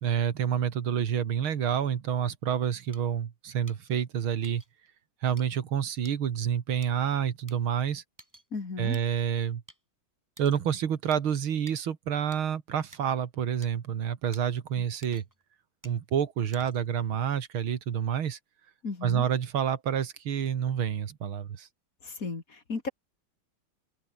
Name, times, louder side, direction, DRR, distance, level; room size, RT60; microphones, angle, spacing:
voice 1, 0.0-4.6 5.2-8.0 8.8-9.6 10.4-15.2 15.8-18.4 19.0-21.7, right 8 dB, 80° right, 2.4 m, -28 dB
sound 1, 2.9-3.0 3.7-3.8 4.4-4.7 5.4-5.5 6.0-6.2 6.8-6.9 7.5-7.6 8.2-8.5 8.9-9.0 9.7-9.8 10.4-10.6 11.1-11.2 11.7-11.8 12.3-12.4 12.9-13.0 13.6-13.7 14.3-14.4 15.0-15.4 15.8-16.0 16.5-16.9, right 1 dB, 10° right, 3.0 m, -52 dB
voice 2, 8.5-9.0 14.8-14.9 18.8-19.2 22.0-22.9, left 4 dB, 40° left, 3.0 m, -35 dB
open air
omnidirectional pair, 2.3 m